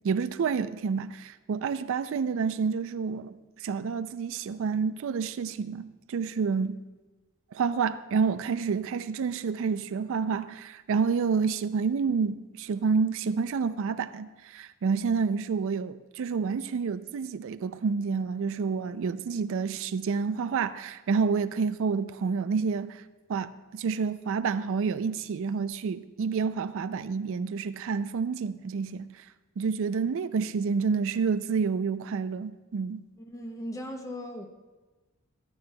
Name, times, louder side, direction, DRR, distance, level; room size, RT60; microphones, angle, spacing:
voice 1, 0.0-6.8 7.5-23.0 23.3-29.1 29.6-33.0, right 5 dB, 65° right, 0.4 m, -29 dB
voice 2, 33.2-34.5, equal, 15° left, 0.6 m, -38 dB
13.5 x 11.5 x 2.2 m
head